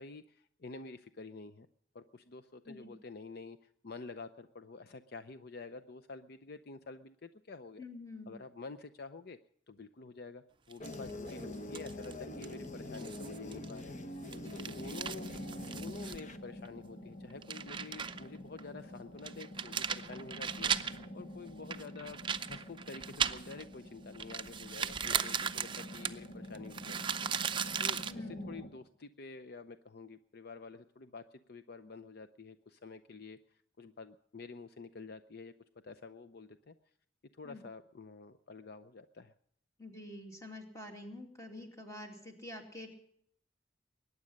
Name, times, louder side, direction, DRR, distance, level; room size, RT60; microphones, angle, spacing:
voice 1, 0.0-1.7 1.9-7.8 8.3-9.4 9.7-14.0 14.5-15.3 15.6-27.1 27.8-35.5 35.8-36.7 37.3-39.3, left 4 dB, 55° left, 11 dB, 0.6 m, -49 dB
voice 2, 7.8-8.4 14.4-14.6 28.1-28.6 37.4-37.6 39.8-42.9, left 1 dB, 15° left, 3 dB, 2.5 m, -47 dB
sound 1, 10.7-11.3 11.7-12.1 12.4-12.5 12.9-13.8 14.2-16.2 16.7-16.8 17.3-18.3 18.6-18.7 19.2-21.1 21.7-23.7 24.1-28.1, right 7 dB, 25° right, 0.6 m, -37 dB
sound 2, 10.8-16.4, left 1 dB, 40° left, 1.0 m, -44 dB
sound 3, 14.5-28.7, left 1 dB, 75° left, 2.8 m, -48 dB
22.0 x 9.7 x 6.4 m, 0.69 s
head